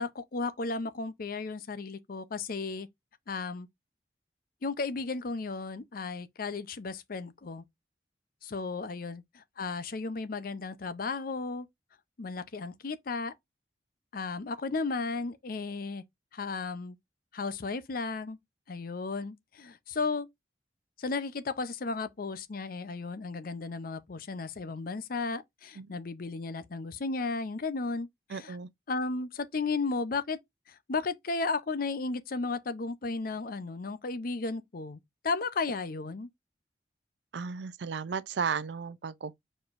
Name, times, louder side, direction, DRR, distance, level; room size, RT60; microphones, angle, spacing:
voice 1, 0.0-2.9 3.3-3.7 4.6-7.6 8.4-11.7 12.2-13.3 14.1-16.0 16.3-17.0 17.3-18.4 18.7-20.3 21.0-28.6 28.9-30.4 30.9-36.3, left 3 dB, 55° left, 0.6 m, -34 dB
voice 2, 28.3-28.7 37.3-39.3, right 6 dB, 80° right, 0.5 m, -34 dB
4.9 x 4.3 x 2.5 m
head